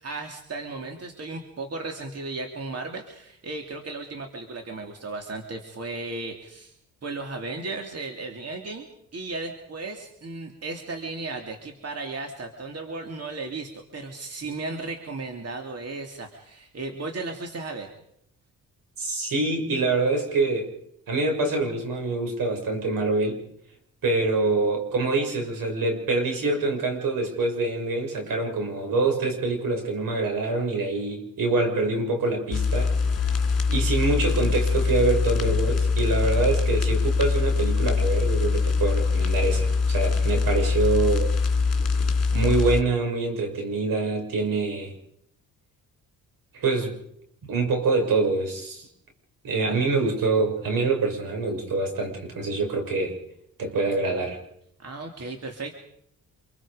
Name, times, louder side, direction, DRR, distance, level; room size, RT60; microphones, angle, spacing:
voice 1, 0.0-6.7 7.0-17.9 54.8-55.7, right 3 dB, 45° right, 3 dB, 3.1 m, -35 dB
voice 2, 19.0-20.7 21.1-23.4 24.0-32.9 33.3-33.4 33.7-41.3 42.3-44.9 46.5-46.9 47.5-48.9 49.4-53.2 53.6-54.4, right 3 dB, 75° right, 3 dB, 6.6 m, -25 dB
sound 1, 32.5-42.8, left 4 dB, 45° left, 3.0 m, -23 dB
27.0 x 23.5 x 5.1 m, 0.73 s
cardioid pair, 90°, 34 cm